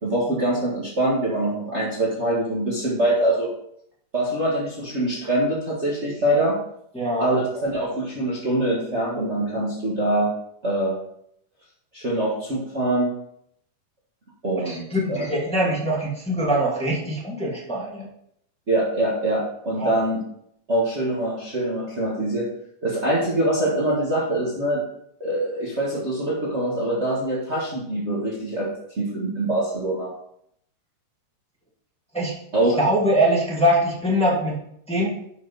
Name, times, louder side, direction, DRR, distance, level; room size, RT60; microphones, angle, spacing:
voice 1, 0.0-3.5 4.1-6.6 7.2-10.3 10.6-11.0 11.9-13.1 14.4-15.3 18.7-20.2 20.7-22.5 22.8-24.8 25.2-28.7 29.0-30.1 32.5-32.8, right 1 dB, 80° right, -5 dB, 0.6 m, -24 dB
voice 2, 6.9-7.3 14.6-18.1 19.8-19.9 32.1-32.4 32.8-34.5 34.9-35.2, equal, 5° left, -5 dB, 1.0 m, -23 dB
10.5 x 5.6 x 4.1 m, 0.72 s
omnidirectional pair, 4.2 m